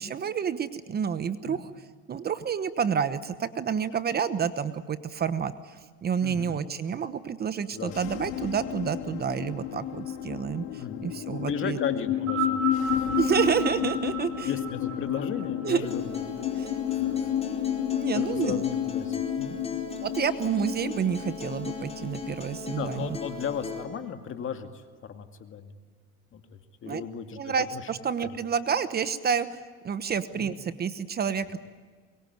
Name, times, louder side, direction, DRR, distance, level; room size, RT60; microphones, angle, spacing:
voice 1, 0.0-1.7 2.1-11.8 13.2-14.5 15.6-15.9 16.6-16.7 17.9-18.6 20.0-23.2 26.8-27.0 27.4-29.6 29.8-31.6, right 7 dB, 30° right, 12 dB, 1.1 m, -29 dB
voice 2, 6.2-6.6 7.7-7.9 10.7-13.1 14.4-16.5 16.9-17.3 18.1-19.6 22.7-24.8 25.1-25.7 26.3-27.8 30.3-30.6, left 7 dB, 40° left, 6 dB, 2.3 m, -35 dB
sound 1, 7.9-23.3, left 11 dB, 85° left, 2.0 m, -32 dB
sound 2, 12.1-16.7 17.6-17.7, right 4 dB, 60° right, 6.8 m, -34 dB
Acoustic guitar, 15.8-23.8, left 3 dB, 20° left, 4.6 m, -38 dB
23.5 x 23.0 x 9.5 m, 1.5 s
cardioid pair, 125°, 31 cm